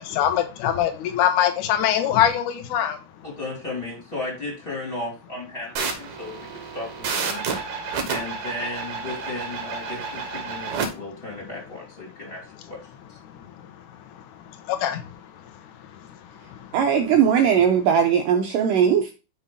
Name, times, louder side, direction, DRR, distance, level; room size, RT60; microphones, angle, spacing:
voice 1, 0.0-3.0 13.2-16.7, left 10 dB, 75° left, 5 dB, 1.9 m, -25 dB
voice 2, 3.2-6.4 6.7-7.4 8.1-12.8 13.1-13.2, left 2 dB, 20° left, -3 dB, 1.9 m, -34 dB
sound 1, 5.7-10.9, right 5 dB, 65° right, 2.0 m, -30 dB
voice 3, 16.7-19.1, right 8 dB, 90° right, 3 dB, 1.9 m, -19 dB
6.0 x 5.5 x 3.7 m, 0.30 s
omnidirectional pair, 4.6 m